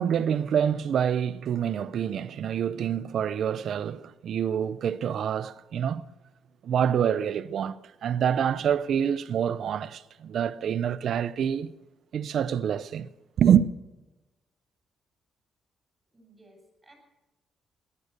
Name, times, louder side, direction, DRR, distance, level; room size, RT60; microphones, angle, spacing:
voice 1, 0.0-6.0 6.6-11.7 12.1-13.1 13.4-13.6, right 8 dB, 65° right, 0.7 m, -26 dB
voice 2, 16.1-16.9, right 1 dB, 15° right, 7.0 m, -57 dB
18.5 x 11.0 x 6.7 m
cardioid pair, 90°, 0 cm